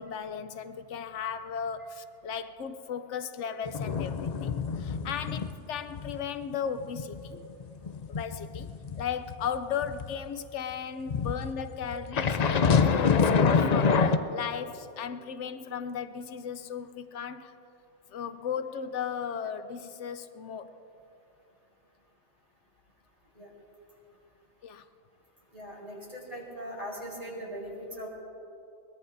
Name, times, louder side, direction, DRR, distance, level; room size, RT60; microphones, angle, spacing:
voice 1, 0.0-7.4 8.1-8.7 9.0-17.5 18.1-20.7 24.6-24.8, left 7 dB, 80° left, 0.9 m, -36 dB
sound 1, 3.7-5.6 5.9-6.2 6.5-10.1 11.1-14.2, left 5 dB, 50° left, 0.5 m, -26 dB
voice 2, 25.5-28.1, equal, 30° right, 4.4 m, -40 dB
22.0 x 20.5 x 2.6 m
omnidirectional pair, 1.2 m